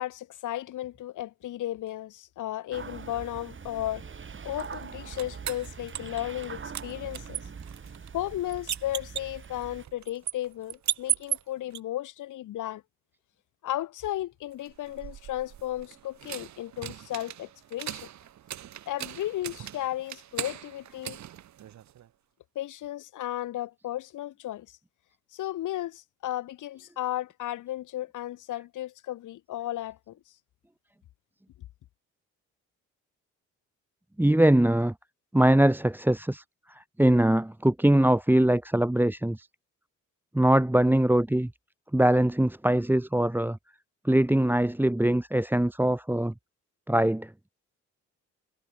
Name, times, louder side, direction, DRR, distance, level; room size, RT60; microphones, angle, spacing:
voice 1, 0.0-4.0 4.4-7.4 8.1-12.8 13.6-18.1 18.9-21.2 22.6-24.7 25.3-30.2, left 13 dB, 80° left, 5.8 m, -34 dB
sound 1, 2.7-9.9, right 6 dB, 40° right, 6.2 m, -43 dB
sound 2, 4.6-6.5 6.7-11.8 14.6-22.1, right 11 dB, 65° right, 2.2 m, -37 dB
voice 2, 34.2-34.9 35.3-36.4 36.7-39.5 40.3-41.5 41.9-43.6 44.0-46.3 46.9-47.3, right 1 dB, 5° right, 2.6 m, -22 dB
cardioid pair, 90°, 30 cm